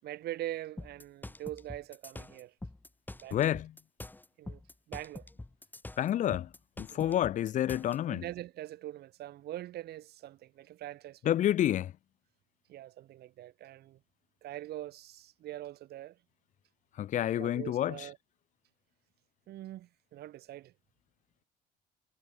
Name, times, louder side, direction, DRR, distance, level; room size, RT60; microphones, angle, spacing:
voice 1, 0.0-2.5 3.2-3.5 4.4-4.6 4.9-5.3 6.9-7.3 8.1-11.3 12.7-14.0 14.4-16.2 17.4-18.2 19.5-20.7, right 14 dB, 70° right, 7.0 m, -43 dB
sound 1, 0.8-8.0, left 2 dB, 10° left, 4.7 m, -45 dB
voice 2, 3.3-3.7 6.0-6.5 6.8-8.2 11.3-11.9 17.0-17.9, left 11 dB, 50° left, 0.5 m, -29 dB
cardioid pair, 110°, 17 cm